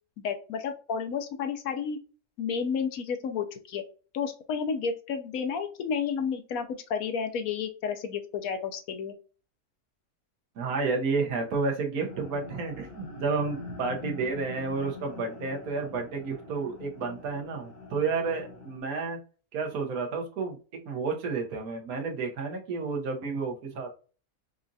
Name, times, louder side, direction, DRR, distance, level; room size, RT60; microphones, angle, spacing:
voice 1, 0.2-2.0 2.4-3.8 4.1-9.1, left 6 dB, 75° left, 7 dB, 1.1 m, -31 dB
voice 2, 10.6-19.2 19.5-20.6 20.8-23.9, right 4 dB, 80° right, 2 dB, 1.3 m, -31 dB
sound 1, 12.1-18.8, left 3 dB, 55° left, 1.3 m, -44 dB
4.9 x 2.4 x 2.6 m, 0.36 s
omnidirectional pair, 1.5 m